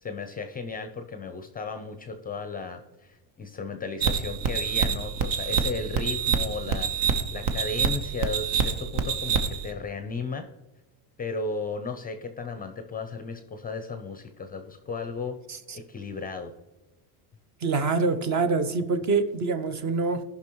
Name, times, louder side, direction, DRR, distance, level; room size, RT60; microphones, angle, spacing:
voice 1, 0.0-10.5 11.2-15.4 15.7-16.5, left 4 dB, 20° left, 8 dB, 0.5 m, -35 dB
sound 1, 4.0-9.7, right 6 dB, 70° right, 1.1 m, -26 dB
voice 2, 17.6-20.2, right 4 dB, 35° right, 10 dB, 0.7 m, -25 dB
15.5 x 5.6 x 3.0 m, 1.1 s
cardioid pair, 125°, 49 cm